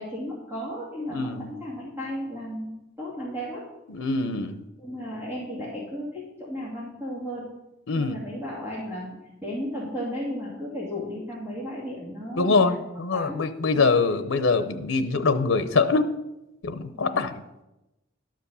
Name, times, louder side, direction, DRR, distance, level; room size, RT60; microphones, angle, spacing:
voice 1, 0.0-3.6 4.8-7.5 8.0-12.6 13.1-13.4 13.7-13.9 16.9-17.2, equal, 10° right, -8 dB, 2.6 m, -34 dB
voice 2, 1.1-1.5 3.9-4.6 7.9-8.2 12.4-16.1 16.6-17.4, left 4 dB, 85° left, 10 dB, 0.7 m, -24 dB
12.0 x 5.1 x 6.8 m, 0.96 s
head